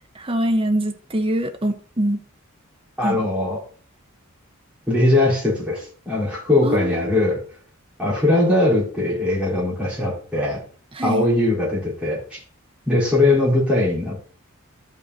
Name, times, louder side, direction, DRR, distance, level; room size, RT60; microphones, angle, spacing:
voice 1, 0.1-2.2 3.0-3.2 6.6-7.2 10.9-11.3, right 1 dB, 25° right, 0.9 m, -24 dB
voice 2, 3.0-3.6 4.9-7.4 8.0-10.6 11.0-12.4 12.9-14.3, left 2 dB, 5° right, 4.3 m, -20 dB
12.0 x 5.4 x 4.1 m
head